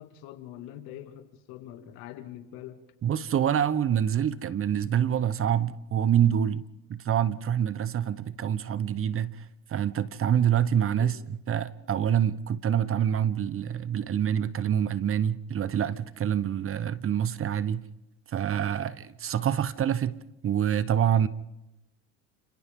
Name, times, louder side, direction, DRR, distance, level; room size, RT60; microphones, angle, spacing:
voice 1, 0.0-2.8 11.0-11.2, left 12 dB, 75° left, 2.5 m, -44 dB
voice 2, 3.0-17.8 18.3-20.2 20.4-21.3, right 9 dB, 35° right, 1.0 m, -26 dB
30.0 x 27.5 x 3.7 m
supercardioid pair, 105°, 36 cm